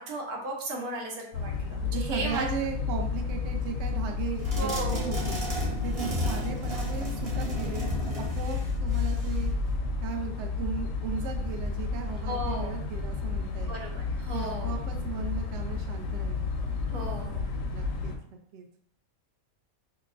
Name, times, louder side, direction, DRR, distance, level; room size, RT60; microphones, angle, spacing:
voice 1, 0.0-2.5 4.5-5.1 12.2-12.7 13.6-14.8 16.9-17.4, right 2 dB, 90° right, 0 dB, 1.4 m, -35 dB
sound 1, 1.3-18.2, left 4 dB, 70° left, 0.9 m, -31 dB
voice 2, 1.9-5.4 5.8-9.5 10.0-13.7 14.3-16.5 17.7-18.1 18.5-18.7, right 6 dB, 65° right, 3 dB, 0.7 m, -37 dB
sound 2, 4.4-9.5, equal, 30° right, 0.7 m, -35 dB
5.8 x 2.1 x 2.4 m, 0.69 s
omnidirectional pair, 1.5 m